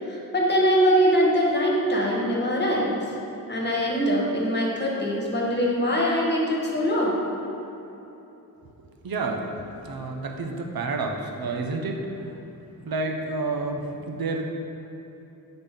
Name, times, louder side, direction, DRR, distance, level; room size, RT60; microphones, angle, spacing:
voice 1, 0.1-3.1 3.5-7.2, equal, 30° left, -3 dB, 1.4 m, -23 dB
voice 2, 9.0-12.4 12.8-14.4, right 3 dB, 90° right, 2 dB, 0.8 m, -30 dB
8.8 x 4.0 x 5.2 m, 3.0 s
wide cardioid pair, 115°, 35 cm